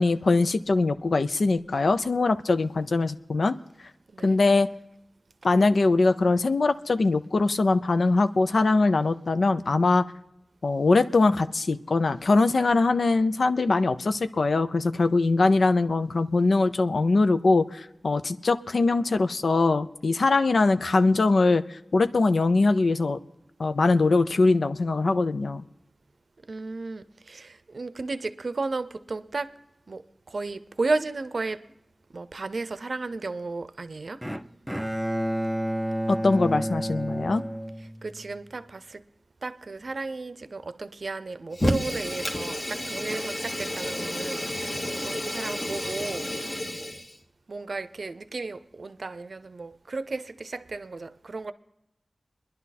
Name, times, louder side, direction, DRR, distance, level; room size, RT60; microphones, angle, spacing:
voice 1, 0.0-3.5 4.2-4.7 5.4-10.0 10.6-23.2 23.6-25.6 36.1-37.4, left 3 dB, 80° left, 0.5 m, -22 dB
voice 2, 26.5-29.5 29.9-30.0 30.3-31.6 32.1-34.2 37.8-39.0 39.4-46.3 47.5-51.5, right 3 dB, 70° right, 0.6 m, -34 dB
Bowed string instrument, 34.2-38.4, equal, 5° right, 0.5 m, -30 dB
Fire, 41.5-47.2, left 1 dB, 35° left, 1.5 m, -30 dB
27.5 x 11.0 x 4.2 m
wide cardioid pair, 70°, 0 cm